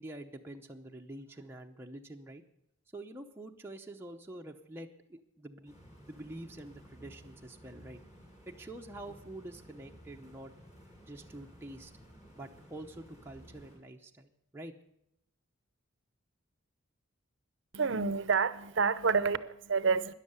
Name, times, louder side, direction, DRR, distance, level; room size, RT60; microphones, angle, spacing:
voice 1, 0.0-2.4 2.9-8.0 8.5-10.5 11.1-11.9 12.3-14.7, right 1 dB, 10° right, 0.7 m, -47 dB
sound 1, 5.7-13.8, equal, 30° left, 5.7 m, -55 dB
voice 2, 17.7-20.1, right 5 dB, 60° right, 0.7 m, -28 dB
13.0 x 10.5 x 8.0 m
head